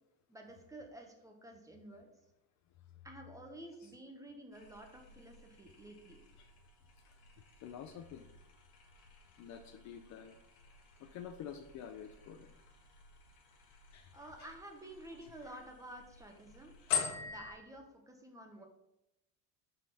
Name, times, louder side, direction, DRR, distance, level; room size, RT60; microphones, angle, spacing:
voice 1, 0.3-2.1 3.0-6.2 14.1-16.7 17.3-18.7, right 1 dB, 5° right, 3 dB, 1.0 m, -51 dB
sound 1, 4.5-17.6, left 7 dB, 85° left, 1.4 m, -46 dB
voice 2, 7.6-8.2 9.4-10.4 11.0-12.5 13.9-14.5 15.4-15.6, left 8 dB, 45° left, 7 dB, 0.5 m, -49 dB
5.6 x 5.2 x 4.1 m, 0.88 s
supercardioid pair, 125°, 43 cm